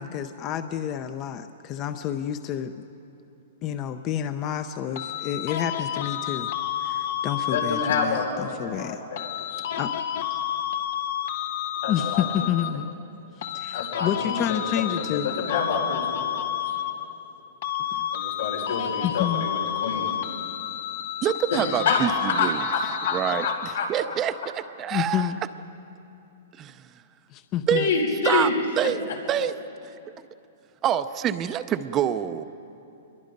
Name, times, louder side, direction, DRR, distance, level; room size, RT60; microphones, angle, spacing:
voice 1, 0.0-2.8 3.6-6.5 6.8-9.0 9.8-9.9 10.3-10.4 11.9-12.9 13.4-15.3 17.9-18.1 19.0-19.5 24.9-25.4 27.3-27.9, left 10 dB, 30° left, 10 dB, 0.6 m, -29 dB
sound 1, 5.0-8.3 9.2-13.0 13.4-17.3 17.6-24.0, left 11 dB, 55° left, 1.0 m, -30 dB
voice 2, 7.5-9.7 11.8-12.2 13.7-16.8 18.1-20.2 21.5-22.0 22.4-22.5 22.7-22.8 23.0-23.1 23.4-23.9 27.7-28.5, left 5 dB, 90° left, -1 dB, 5.5 m, -28 dB
voice 3, 21.2-22.6 23.1-25.3 26.6-26.8 27.7-27.9 28.2-28.5 28.8-29.0 29.3-29.5 30.8-32.4, right 10 dB, 20° right, 11 dB, 0.6 m, -26 dB
27.0 x 22.0 x 5.3 m, 2.7 s
hypercardioid pair, 160°, 0 cm